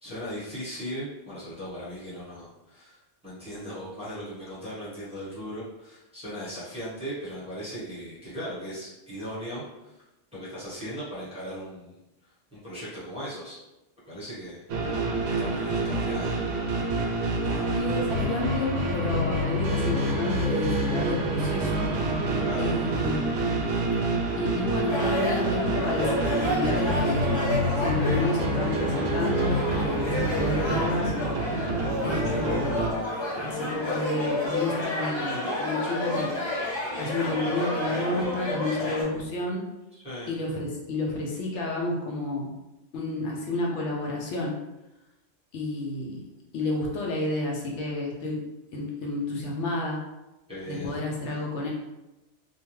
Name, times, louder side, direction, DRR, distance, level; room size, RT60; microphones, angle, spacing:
voice 1, 0.0-10.0 10.3-12.0 12.5-13.6 14.1-14.6 15.3-16.4 17.4-17.7 22.4-22.8 30.1-30.3 40.0-40.3 50.5-50.9, equal, 5° right, -10 dB, 0.9 m, -38 dB
sound 1, 14.7-32.9, right 1 dB, 80° right, 0.9 m, -27 dB
voice 2, 17.7-21.9 22.6-23.3 24.4-27.5 27.8-31.1 32.0-32.8 33.4-36.3 37.0-39.6 40.3-42.5 42.9-44.5 45.5-46.2 46.5-48.4 48.7-50.0 50.7-51.7, left 2 dB, 75° left, -2 dB, 0.9 m, -30 dB
sound 2, 24.9-39.0, left 2 dB, 25° left, 0.7 m, -30 dB
2.6 x 2.1 x 3.0 m, 0.97 s
omnidirectional pair, 1.2 m